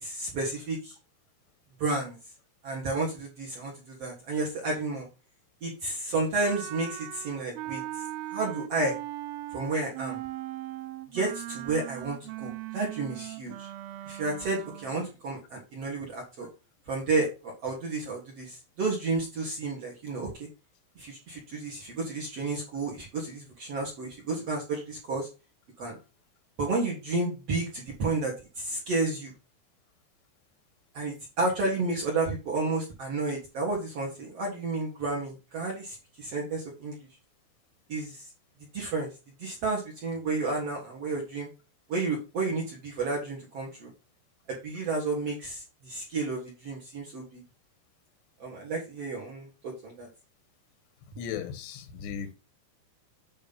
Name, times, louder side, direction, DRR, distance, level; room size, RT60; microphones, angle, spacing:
voice 1, 0.0-0.9 1.8-2.2 2.6-5.1 5.6-7.8 8.3-9.0 9.5-10.2 11.1-13.7 14.1-16.5 16.9-20.5 21.0-25.3 25.8-25.9 26.6-29.3 30.9-37.0 37.9-38.2 38.7-39.1 39.4-41.5 41.9-43.9 44.5-47.4 48.4-50.1, right 3 dB, 55° right, 1.9 m, -31 dB
Wind instrument woodwind instrument, 6.4-15.0, right 15 dB, 80° right, 2.5 m, -39 dB
voice 2, 51.1-52.3, left 8 dB, 90° left, 3.1 m, -36 dB
8.8 x 3.2 x 5.3 m
omnidirectional pair, 4.9 m